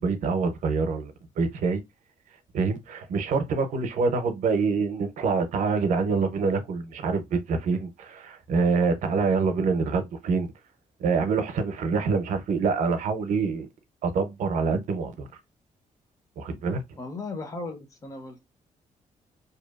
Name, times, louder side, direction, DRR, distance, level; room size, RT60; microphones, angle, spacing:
voice 1, 0.0-1.8 2.5-10.5 11.0-13.7 14.0-15.3 16.4-16.8, right 4 dB, 65° right, 0.6 m, -26 dB
voice 2, 17.0-18.4, left 3 dB, 25° left, 0.5 m, -36 dB
2.7 x 2.3 x 2.3 m
wide cardioid pair, 175°, 14 cm